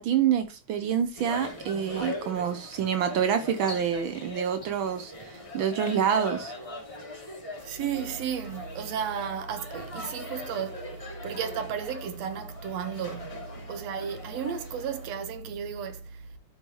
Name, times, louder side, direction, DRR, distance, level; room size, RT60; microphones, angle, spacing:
voice 1, 0.0-6.5, right 8 dB, 85° right, 1.1 m, -27 dB
sound 1, 1.2-15.1, left 2 dB, 10° left, 2.5 m, -41 dB
voice 2, 7.6-10.9 11.2-13.4 13.7-16.2, right 7 dB, 70° right, 2.0 m, -33 dB
13.5 x 5.4 x 3.1 m
omnidirectional pair, 3.3 m